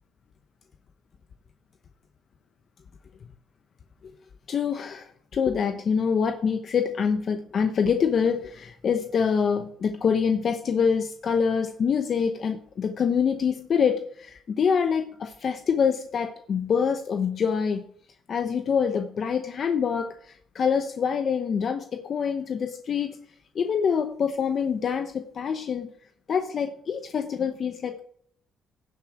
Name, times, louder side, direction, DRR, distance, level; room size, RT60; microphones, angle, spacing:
voice 1, 4.5-17.8 18.3-23.2 23.5-25.9 26.3-28.0, left 6 dB, 50° left, 7 dB, 0.9 m, -25 dB
16.5 x 7.4 x 4.6 m, 0.62 s
cardioid pair, 105°, 0 cm